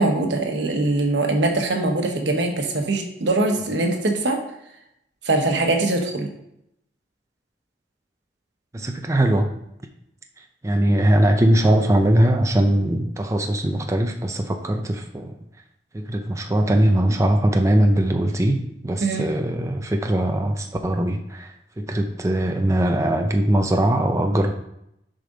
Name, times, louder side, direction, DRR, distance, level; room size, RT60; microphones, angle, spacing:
voice 1, 0.0-4.4 5.2-6.3 19.0-19.3, right 2 dB, 80° right, 3 dB, 1.3 m, -22 dB
voice 2, 8.7-9.5 10.6-15.4 15.9-24.5, right 1 dB, 15° right, 4 dB, 0.5 m, -21 dB
7.8 x 5.1 x 3.9 m, 0.79 s
head